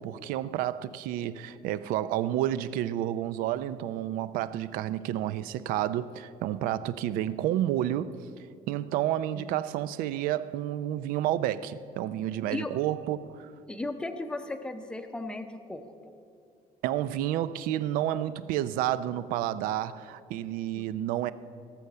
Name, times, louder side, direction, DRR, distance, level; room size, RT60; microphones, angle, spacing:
voice 1, 0.0-8.2 8.7-13.5 16.8-21.3, right 12 dB, 90° right, 0.5 m, -30 dB
voice 2, 13.7-16.1 20.8-20.9, left 2 dB, 5° left, 0.6 m, -36 dB
18.0 x 7.0 x 6.6 m
cardioid pair, 180°, 14 cm